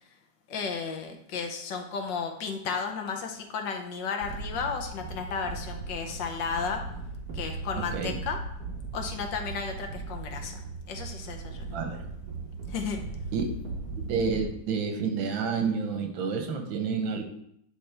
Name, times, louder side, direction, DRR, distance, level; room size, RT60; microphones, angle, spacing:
voice 1, 0.5-6.8 7.3-8.4 8.9-11.8 12.7-13.0, left 5 dB, 75° left, 4 dB, 1.5 m, -33 dB
sound 1, 4.2-14.5, right 3 dB, 55° right, 1.6 m, -38 dB
voice 2, 7.8-8.2 11.7-12.1 13.3-13.4 14.0-17.2, right 5 dB, 85° right, 5 dB, 1.6 m, -29 dB
10.5 x 3.5 x 3.4 m, 0.72 s
omnidirectional pair, 2.1 m